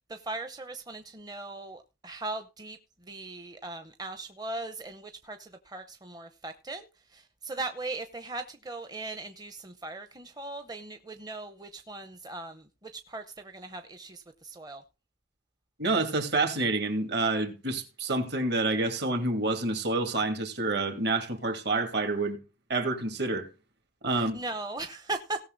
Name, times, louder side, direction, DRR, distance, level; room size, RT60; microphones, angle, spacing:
voice 1, 0.1-2.8 3.1-14.8 24.1-25.4, right 2 dB, 20° right, 0.7 m, -39 dB
voice 2, 15.8-22.4 22.7-23.5 24.0-24.4, right 2 dB, 55° right, 2.5 m, -28 dB
18.0 x 6.5 x 3.9 m
head